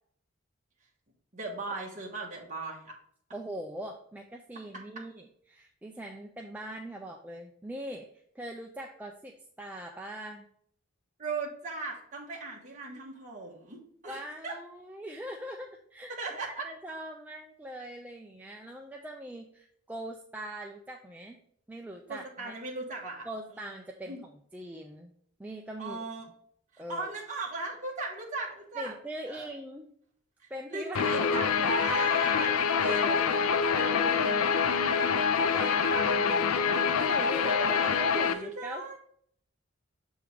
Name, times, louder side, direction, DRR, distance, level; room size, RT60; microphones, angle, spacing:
voice 1, 1.3-2.9 11.2-14.6 16.2-16.6 22.1-23.3 23.6-23.7 24.0-24.2 25.8-26.3 26.7-28.9 29.3-29.5 30.4-32.5 32.8-33.3 35.5-36.2 37.4-37.9 38.2-39.0, right 3 dB, 35° right, -3 dB, 1.3 m, -38 dB
voice 2, 3.3-10.4 14.0-16.1 16.6-21.4 21.7-22.5 23.2-25.1 25.4-26.0 26.8-27.1 28.8-29.9 30.5-34.6 35.1-39.0, right 1 dB, 10° right, 1 dB, 0.4 m, -42 dB
Guitar, 30.9-38.3, left 6 dB, 90° left, 0.5 m, -26 dB
6.9 x 3.6 x 4.8 m, 0.66 s
head